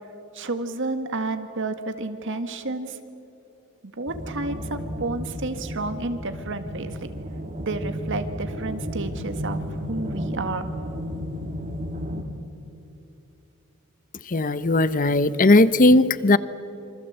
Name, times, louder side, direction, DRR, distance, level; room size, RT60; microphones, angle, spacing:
voice 1, 0.3-3.0 3.8-7.1 7.6-9.6 9.9-10.7, right 2 dB, 60° right, 8 dB, 1.8 m, -31 dB
sound 1, 4.1-12.2, equal, 35° right, 2.4 m, -33 dB
voice 2, 14.3-16.4, left 2 dB, 40° left, 15 dB, 0.8 m, -17 dB
27.5 x 25.5 x 8.0 m, 2.8 s
head